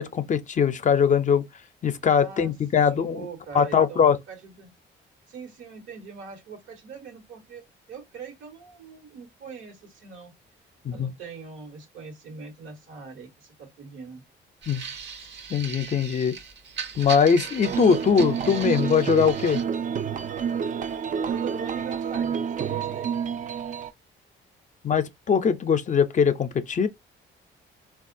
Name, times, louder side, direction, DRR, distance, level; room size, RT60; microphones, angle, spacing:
voice 1, 0.0-1.4 1.8-3.3 3.5-4.2 10.8-11.1 14.7-14.8 15.5-16.4 17.0-19.6 24.8-26.9, left 6 dB, 40° left, 0.5 m, -21 dB
voice 2, 2.1-4.7 5.3-10.3 10.9-14.2 21.2-23.2, right 5 dB, 85° right, 1.2 m, -42 dB
sound 1, 14.6-19.6, right 6 dB, 65° right, 0.8 m, -38 dB
sound 2, 17.6-23.9, right 7 dB, 40° right, 0.4 m, -29 dB
3.6 x 2.3 x 2.5 m
cardioid pair, 90°, 20 cm